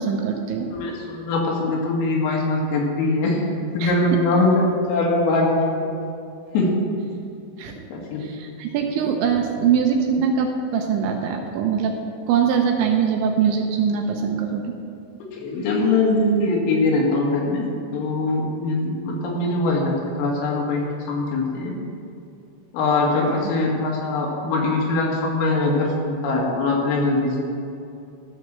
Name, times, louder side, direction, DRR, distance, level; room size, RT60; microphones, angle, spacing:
voice 1, 0.0-0.7 3.8-3.9 7.6-7.7 8.3-11.9 12.3-14.6, right 7 dB, 80° right, 3 dB, 2.9 m, -22 dB
voice 2, 0.7-3.4 3.7-4.6 4.9-5.9 6.5-6.7 7.9-8.3 15.3-17.7 17.9-21.7 22.7-27.3, left 2 dB, 85° left, -2 dB, 4.4 m, -22 dB
13.5 x 6.3 x 6.5 m, 2.6 s
omnidirectional pair, 5.8 m